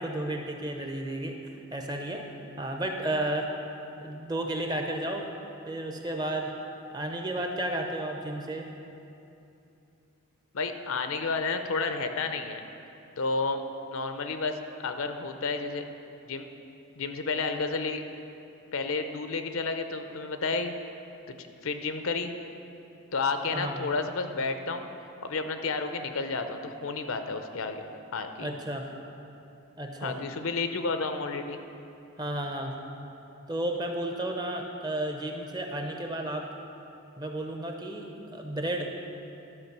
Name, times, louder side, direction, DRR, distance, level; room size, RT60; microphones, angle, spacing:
voice 1, 0.0-1.4 1.7-2.2 2.6-3.5 4.0-5.2 5.7-6.5 6.9-8.7 23.5-23.9 28.4-28.9 29.8-30.2 32.2-32.8 33.5-36.5 37.2-39.0, right 1 dB, 20° right, 3 dB, 0.7 m, -32 dB
voice 2, 10.5-12.6 13.2-13.6 13.9-15.8 16.3-16.5 17.0-18.0 18.7-20.7 21.3-22.3 23.1-24.9 25.2-27.9 28.1-28.5 30.0-31.6, left 4 dB, 70° left, 7 dB, 0.6 m, -31 dB
12.0 x 5.1 x 6.7 m, 2.8 s
head